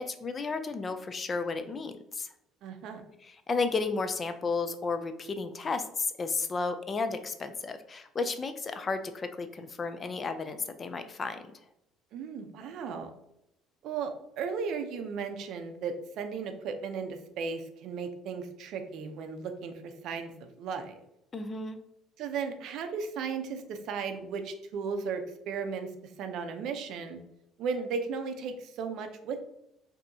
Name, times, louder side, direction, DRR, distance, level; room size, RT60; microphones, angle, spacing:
voice 1, 0.0-2.3 3.2-11.4 21.3-21.8, left 4 dB, 25° left, 9 dB, 0.3 m, -33 dB
voice 2, 2.6-3.0 12.1-13.1 13.8-20.9 22.2-27.2 27.6-29.5, right 5 dB, 60° right, 7 dB, 0.5 m, -36 dB
5.3 x 2.7 x 2.7 m, 0.82 s
cardioid pair, 155°, 0 cm